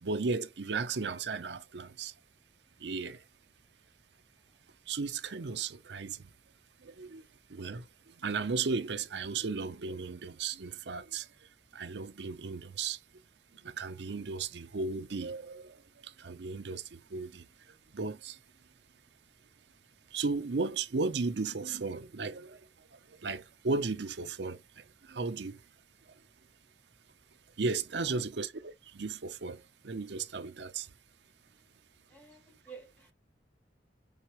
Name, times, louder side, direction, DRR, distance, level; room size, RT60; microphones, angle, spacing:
voice 1, 0.0-2.1 2.8-3.2 4.9-6.3 6.8-7.2 7.5-13.0 13.5-17.5 17.9-18.4 20.1-25.6 27.6-30.9, right 4 dB, 70° right, 0.7 m, -35 dB
voice 2, 32.1-33.1, right 4 dB, 10° left, 2.4 m, -51 dB
7.9 x 4.1 x 3.0 m
head